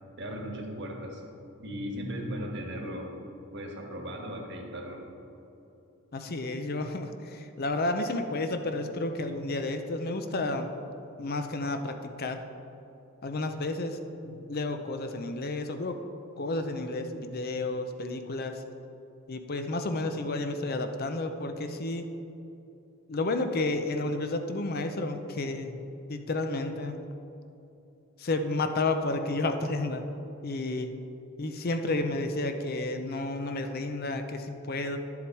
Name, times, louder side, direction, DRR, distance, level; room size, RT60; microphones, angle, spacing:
voice 1, 0.2-1.2 1.6-3.1 3.5-5.0, equal, 55° right, 1 dB, 1.4 m, -37 dB
voice 2, 6.1-10.7 11.2-12.4 13.2-16.0 16.4-18.6 19.3-22.1 23.1-25.8 26.1-27.0 28.2-30.0 30.4-30.9 31.4-35.0, left 2 dB, 45° left, 7 dB, 0.6 m, -31 dB
11.0 x 7.2 x 4.6 m, 2.9 s
head